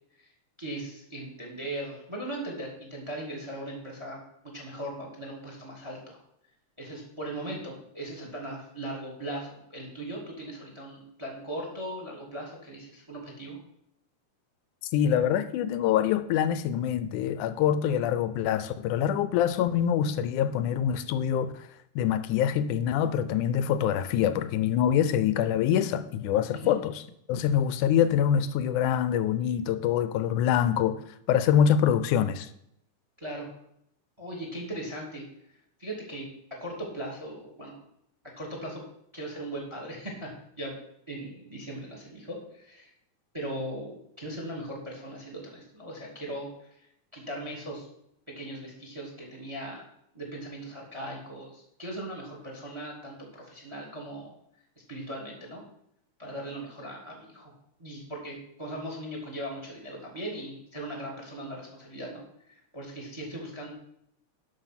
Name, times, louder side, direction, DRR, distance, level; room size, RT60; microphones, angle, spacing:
voice 1, 0.6-4.2 4.5-6.2 6.8-13.6 26.5-26.7 33.2-33.6 34.2-35.2 35.8-37.8 38.4-38.8 39.1-40.8 41.1-42.9 43.3-46.7 47.1-47.9 48.4-49.8 50.1-54.3 54.9-55.6 56.2-57.5 57.8-63.7, right 1 dB, 10° right, 2.0 m, -39 dB
voice 2, 14.9-21.7 22.0-27.0 27.3-31.0 31.3-32.5, left 9 dB, 85° left, 2.1 m, -25 dB
12.0 x 5.9 x 5.9 m
omnidirectional pair, 3.6 m